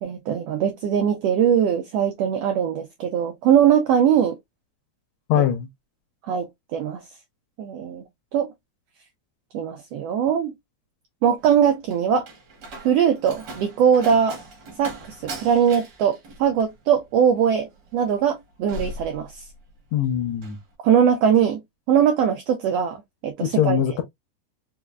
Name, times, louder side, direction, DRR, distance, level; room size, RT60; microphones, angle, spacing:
voice 1, 0.0-4.4 5.3-5.4 6.2-7.0 7.6-8.0 8.3-8.5 9.5-10.5 11.2-12.3 12.8-14.4 14.8-15.0 15.2-19.4 20.8-21.6 21.9-23.8, right 8 dB, 85° right, 1.4 m, -21 dB
voice 2, 5.3-5.7 19.9-20.6 23.4-24.0, left 10 dB, 80° left, 1.6 m, -22 dB
Slam, 11.4-19.8 20.1-20.6, right 1 dB, 65° right, 1.0 m, -39 dB
4.8 x 2.4 x 2.2 m
omnidirectional pair, 3.4 m